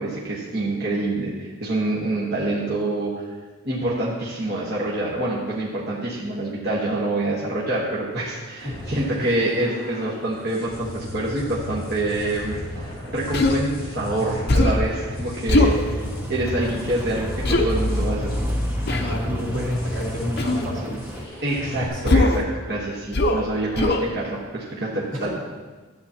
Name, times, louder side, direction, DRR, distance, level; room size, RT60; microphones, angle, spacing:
voice 1, 0.0-3.2 3.6-12.6 13.1-16.0 16.3-18.3 21.4-25.3, right 2 dB, 50° right, -6 dB, 1.3 m, -26 dB
sound 1, 8.6-21.9, equal, 25° left, 2.7 m, -34 dB
Human voice, 13.3-13.6 14.5-14.9 15.5-15.8 17.4-17.7 18.9-19.2 20.4-20.7 22.1-22.4 23.1-23.4 23.8-24.1, left 2 dB, 50° left, 0.8 m, -19 dB
Rain, 15.5-21.2, equal, 10° right, 0.7 m, -29 dB
voice 2, 18.9-21.0 21.9-22.2 25.1-25.3, equal, 85° right, -4 dB, 2.7 m, -30 dB
12.0 x 8.6 x 2.9 m, 1.3 s
head